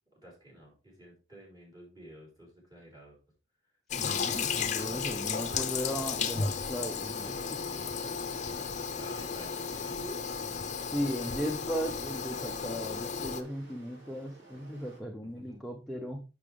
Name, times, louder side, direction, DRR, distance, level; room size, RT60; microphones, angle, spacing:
voice 1, 0.2-3.2 4.4-5.0 8.9-10.2 15.3-15.6, right 1 dB, 20° right, -2 dB, 4.0 m, -51 dB
Toilet flush, 3.9-13.4, left 6 dB, 40° left, 0.8 m, -34 dB
voice 2, 4.0-7.8 10.9-16.2, equal, ahead, 1 dB, 0.8 m, -37 dB
sound 1, 4.0-15.0, right 2 dB, 70° right, 4.0 m, -55 dB
8.2 x 6.2 x 3.4 m, 0.31 s
head